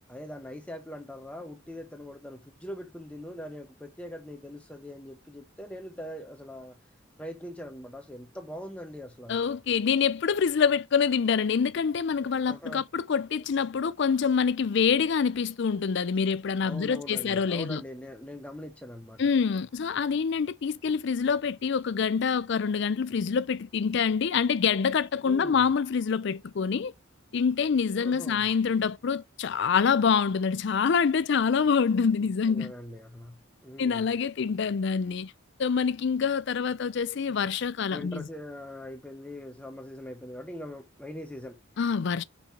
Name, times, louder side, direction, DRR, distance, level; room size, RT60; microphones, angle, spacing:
voice 1, 0.1-6.8 7.2-9.4 12.5-12.8 16.6-19.3 25.2-25.6 28.0-28.5 32.2-34.1 37.9-41.6, left 1 dB, 5° left, 0.7 m, -42 dB
voice 2, 9.3-17.8 19.2-26.9 27.3-32.7 33.8-35.3 35.6-38.2 41.8-42.2, left 6 dB, 55° left, 0.4 m, -26 dB
5.4 x 4.3 x 5.6 m
head